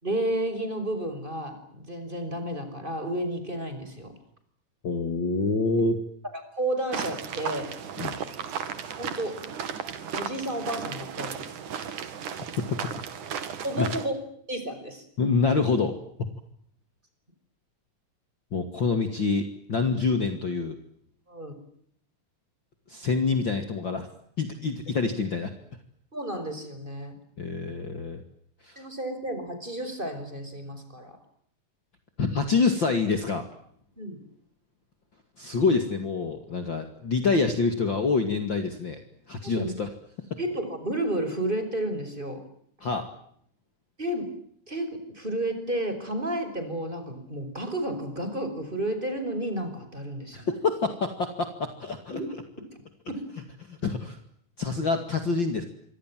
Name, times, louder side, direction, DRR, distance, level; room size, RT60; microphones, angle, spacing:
voice 1, 0.0-4.1 6.3-7.7 9.0-9.4 10.1-11.4 13.6-14.2 14.5-15.1 21.3-21.5 26.1-27.2 28.8-31.2 34.0-34.2 39.4-39.7 40.4-42.4 44.0-44.3 44.7-44.9 45.1-50.5 52.1-52.3, right 1 dB, 15° right, 9 dB, 5.8 m, -31 dB
voice 2, 4.8-6.0 8.0-8.2 13.8-13.9 15.2-16.0 18.5-20.7 22.9-24.1 24.4-25.5 27.4-28.2 28.6-28.8 32.2-33.5 35.4-39.0 39.3-39.9 40.3-40.4 42.8-43.1 50.3-52.2 53.7-54.2 54.6-55.7, left 4 dB, 40° left, 7 dB, 2.8 m, -26 dB
sound 1, 6.9-14.1, right 7 dB, 75° right, 3.6 m, -35 dB
27.5 x 25.0 x 7.7 m, 0.67 s
omnidirectional pair, 3.6 m